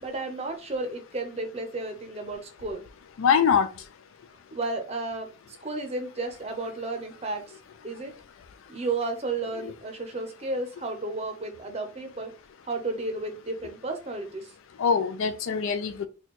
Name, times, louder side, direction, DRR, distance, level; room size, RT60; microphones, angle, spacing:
voice 1, 0.0-2.8 4.5-7.4 7.8-8.1 8.7-12.3 12.7-14.5, right 2 dB, 30° right, 0.6 m, -33 dB
voice 2, 3.2-3.7 14.8-16.1, left 6 dB, 75° left, 0.3 m, -23 dB
4.2 x 2.3 x 3.0 m
head